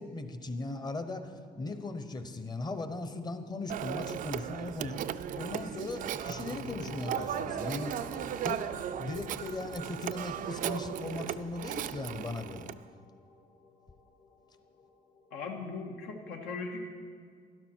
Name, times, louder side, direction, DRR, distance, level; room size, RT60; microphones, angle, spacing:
voice 1, 0.0-5.0 5.3-8.1 8.4-8.6 9.0-12.7, left 2 dB, 25° left, 9 dB, 0.9 m, -38 dB
Telephone, 3.7-12.8, right 10 dB, 55° right, 0.4 m, -37 dB
sound 1, 6.3-15.8, left 3 dB, 50° left, 1.2 m, -50 dB
voice 2, 15.3-16.9, left 4 dB, 80° left, 2 dB, 1.7 m, -38 dB
12.0 x 12.0 x 4.6 m, 2.1 s
cardioid pair, 110°, 17 cm